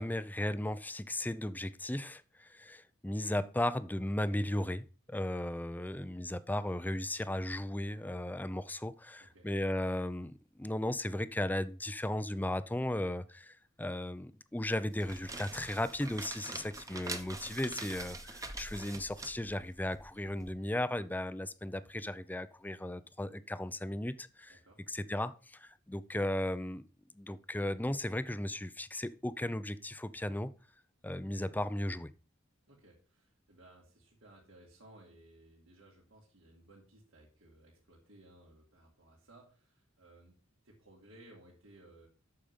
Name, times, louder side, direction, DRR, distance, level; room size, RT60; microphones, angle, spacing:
voice 1, 0.0-10.3 10.6-24.6 24.9-26.9 27.1-30.5 31.0-32.1, left 1 dB, 10° left, 0.5 m, -36 dB
sound 1, 14.8-20.5, right 2 dB, 15° right, 1.1 m, -45 dB
voice 2, 24.5-24.8 32.7-40.4 40.6-42.1, right 1 dB, 80° right, 3.1 m, -59 dB
8.6 x 6.6 x 5.6 m
head